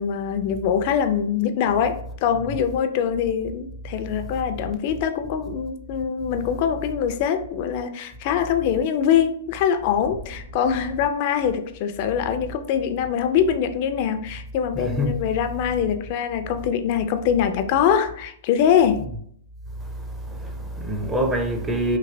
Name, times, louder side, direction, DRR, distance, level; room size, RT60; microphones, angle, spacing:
voice 1, 0.0-19.1, left 8 dB, 45° left, 0.4 m, -23 dB
voice 2, 14.7-15.2 19.8-22.0, equal, 10° right, 0.5 m, -26 dB
3.0 x 2.7 x 2.6 m
hypercardioid pair, 135°, 0 cm